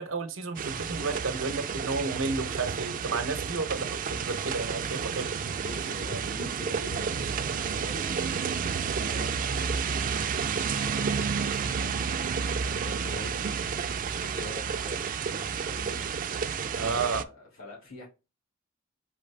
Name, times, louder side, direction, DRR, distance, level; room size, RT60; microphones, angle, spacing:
voice 1, 0.0-5.3 16.8-17.2, right 4 dB, 90° right, 0.8 m, -32 dB
sound 1, 0.6-17.2, right 6 dB, 45° right, 0.4 m, -31 dB
voice 2, 5.6-18.1, left 2 dB, 85° left, 2.7 m, -46 dB
4.9 x 3.3 x 3.3 m
head